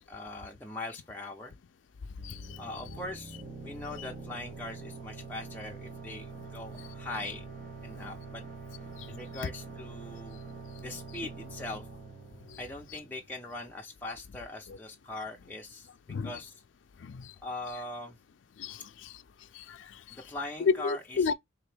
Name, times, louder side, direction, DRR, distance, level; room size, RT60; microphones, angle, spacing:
voice 1, 0.1-1.6 2.6-7.4 7.8-8.4 9.1-10.4 10.8-11.9 12.6-15.9 16.2-16.6 17.4-18.2 20.1-21.3, left 2 dB, 10° left, 0.6 m, -41 dB
voice 2, 2.2-2.6 9.0-9.1 12.5-12.6 16.1-16.3 17.0-17.3 18.6-19.2 19.5-20.0 20.7-21.3, left 5 dB, 85° left, 0.4 m, -32 dB
sound 1, 2.2-13.6, right 4 dB, 45° right, 0.9 m, -45 dB
3.7 x 2.9 x 3.3 m
head